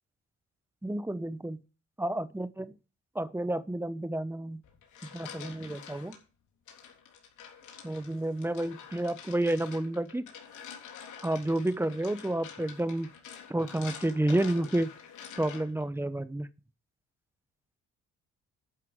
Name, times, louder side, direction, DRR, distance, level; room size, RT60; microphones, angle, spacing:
voice 1, 0.8-1.6 2.0-2.7 3.1-4.6 5.1-6.2 7.8-10.3 11.2-13.1 13.5-14.9 15.4-16.5, right 1 dB, 10° right, 0.9 m, -30 dB
sound 1, 4.6-6.2 6.7-15.9, left 7 dB, 80° left, 3.5 m, -48 dB
11.5 x 5.5 x 6.4 m
cardioid pair, 90°, 30 cm